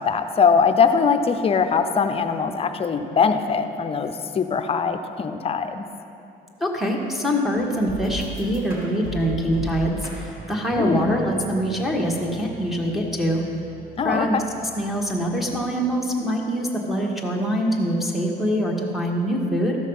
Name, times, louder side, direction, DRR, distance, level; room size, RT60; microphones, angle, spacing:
voice 1, 0.0-5.9 10.8-11.1 14.0-14.4, left 5 dB, 35° left, 8 dB, 0.6 m, -21 dB
voice 2, 6.6-13.4 14.0-14.4 14.8-19.8, equal, ahead, -2 dB, 1.4 m, -24 dB
sound 1, 7.5-15.5, left 1 dB, 65° right, 2.2 m, -38 dB
13.0 x 6.4 x 5.5 m, 2.8 s
cardioid pair, 115°, 17 cm